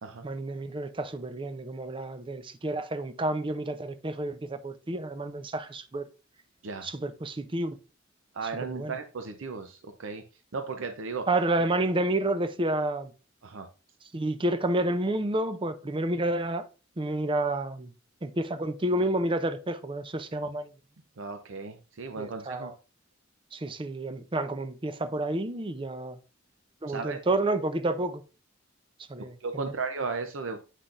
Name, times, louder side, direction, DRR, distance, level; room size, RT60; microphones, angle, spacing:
voice 1, 0.2-6.0 6.8-7.8 8.7-8.9 11.3-13.1 14.1-16.7 17.0-17.9 18.2-20.7 22.2-22.7 23.5-26.2 26.8-28.2 29.1-29.7, right 1 dB, 25° right, 0.5 m, -30 dB
voice 2, 8.3-11.3 11.6-11.7 13.4-13.7 21.2-22.7 26.9-27.2 27.5-27.6 29.2-30.6, right 4 dB, 75° right, 0.6 m, -36 dB
8.2 x 5.8 x 2.5 m
head